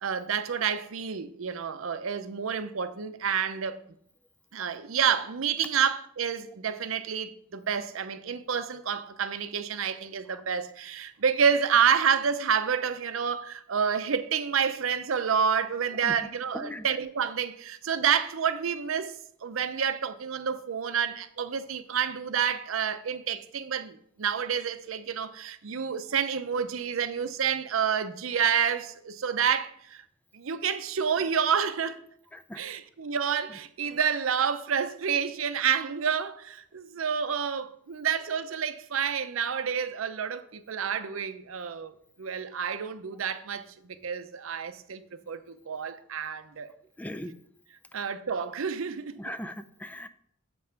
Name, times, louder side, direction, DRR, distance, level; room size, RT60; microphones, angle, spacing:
voice 1, 0.0-3.8 4.5-19.1 19.4-30.0 30.3-32.0 32.6-41.9 42.2-46.7 47.9-49.2, right 7 dB, 75° right, 0.6 m, -29 dB
voice 2, 16.5-16.9 32.3-32.8 47.0-47.3 49.2-50.1, left 1 dB, 10° left, 0.4 m, -39 dB
7.5 x 5.4 x 5.7 m
head